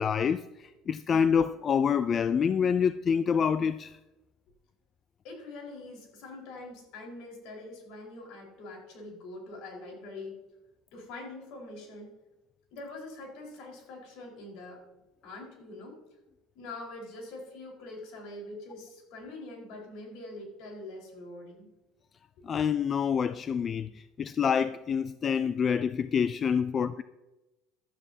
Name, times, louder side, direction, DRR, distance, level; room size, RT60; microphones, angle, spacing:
voice 1, 0.0-3.9 22.4-27.0, left 7 dB, 30° left, 0.3 m, -27 dB
voice 2, 5.2-10.4 10.9-12.1 12.7-14.9 15.2-16.0 16.5-21.7, left 2 dB, 65° left, 4.6 m, -44 dB
16.5 x 12.5 x 2.8 m
cardioid pair, 140°, 0 cm